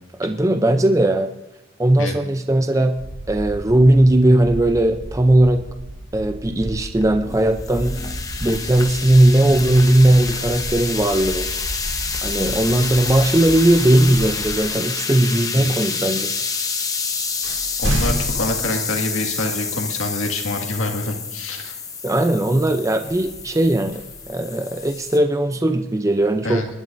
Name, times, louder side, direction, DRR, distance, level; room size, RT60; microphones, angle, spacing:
voice 1, 0.2-1.3 1.8-3.0 3.3-5.6 6.1-8.0 8.4-11.5 12.2-16.3 22.0-26.6, right 1 dB, 15° right, 7 dB, 0.5 m, -18 dB
sound 1, 3.0-14.6, equal, 35° right, 1.0 m, -34 dB
sound 2, 7.0-25.2, left 5 dB, 15° left, 0.8 m, -28 dB
sound 3, 17.1-19.7 20.2-20.3 22.9-25.1, equal, 75° right, 2.3 m, -31 dB
voice 2, 17.8-21.7 26.4-26.7, left 2 dB, 90° left, 2 dB, 2.1 m, -26 dB
26.0 x 11.5 x 2.6 m, 0.94 s
head